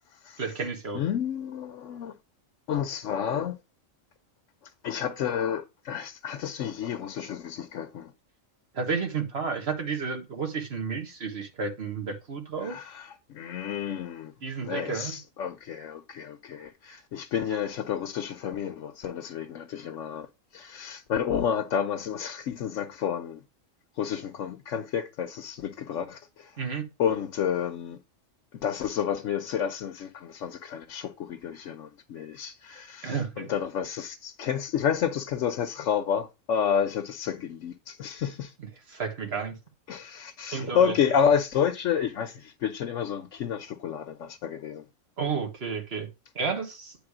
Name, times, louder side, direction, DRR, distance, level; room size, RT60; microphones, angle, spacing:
voice 1, 0.4-1.0 8.7-12.7 14.4-15.2 26.6-26.8 33.0-33.5 38.9-39.6 40.5-41.0 45.2-46.1 46.4-47.0, right 5 dB, 50° right, 1.8 m, -31 dB
voice 2, 0.9-2.2 2.7-3.6 4.8-8.1 12.6-14.3 14.6-20.3 20.5-23.4 24.0-26.5 27.0-28.0 28.6-38.5 39.9-44.8, left 8 dB, 75° left, 1.0 m, -30 dB
9.1 x 3.4 x 4.8 m
omnidirectional pair, 1.3 m